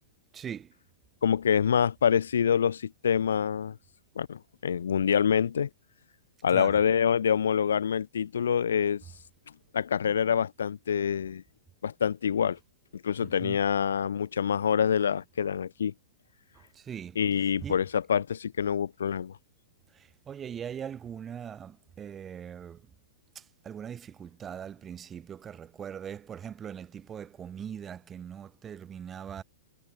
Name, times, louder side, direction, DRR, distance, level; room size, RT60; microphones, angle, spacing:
voice 1, 0.3-0.7 6.5-6.8 13.2-13.6 16.5-17.2 17.6-17.8 19.9-22.8 23.3-29.4, right 8 dB, 20° right, 3.3 m, -41 dB
voice 2, 1.2-3.8 4.1-5.7 6.4-9.0 9.7-11.4 11.8-12.6 13.0-15.9 17.1-19.3, left 8 dB, 85° left, 3.0 m, -26 dB
hypercardioid pair, 130°, 0 cm